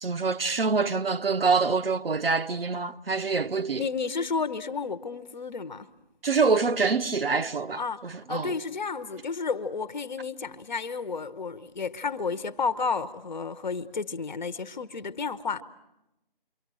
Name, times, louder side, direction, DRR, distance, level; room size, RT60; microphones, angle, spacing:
voice 1, 0.0-3.8 6.2-8.5, right 4 dB, 80° right, 0.9 m, -26 dB
voice 2, 3.7-5.9 7.7-8.0 8.3-15.6, left 5 dB, 50° left, 1.1 m, -31 dB
27.5 x 24.0 x 6.3 m
figure-of-eight pair, 160°, 29 cm